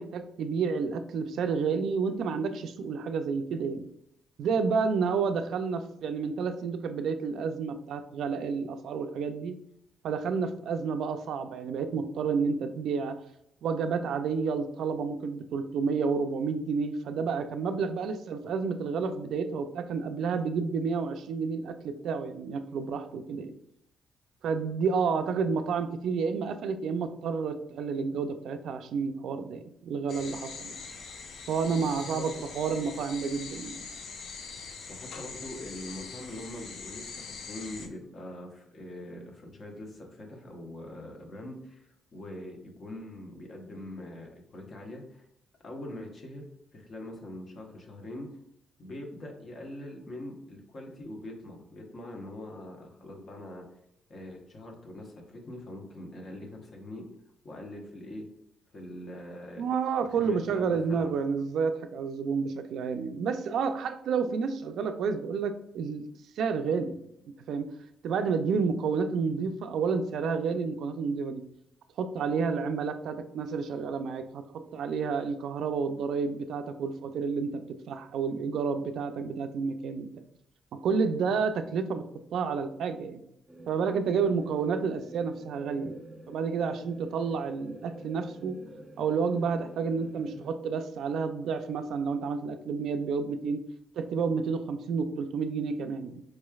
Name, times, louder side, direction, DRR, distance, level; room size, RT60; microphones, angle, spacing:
voice 1, 0.0-3.9 4.4-9.6 10.0-13.2 13.6-23.5 24.4-30.7 31.5-33.8 59.6-66.0 66.4-67.7 68.0-71.4 72.0-80.1 80.7-82.1 82.3-83.2 83.7-86.0 86.3-88.6 89.0-93.7 94.0-96.2, right 5 dB, 75° right, 8 dB, 0.3 m, -30 dB
sound 1, 30.1-37.9, left 5 dB, 65° left, 0.5 m, -43 dB
voice 2, 31.8-32.4 34.9-45.3 45.6-46.5 46.7-48.3 48.8-53.6 54.1-57.0 57.4-58.3 58.7-59.6 60.0-61.2, left 1 dB, 50° left, 2 dB, 1.0 m, -43 dB
sound 2, 83.5-90.5, right 1 dB, 10° right, 0.7 m, -47 dB
4.6 x 3.1 x 2.3 m, 0.76 s
cardioid pair, 90°, 0 cm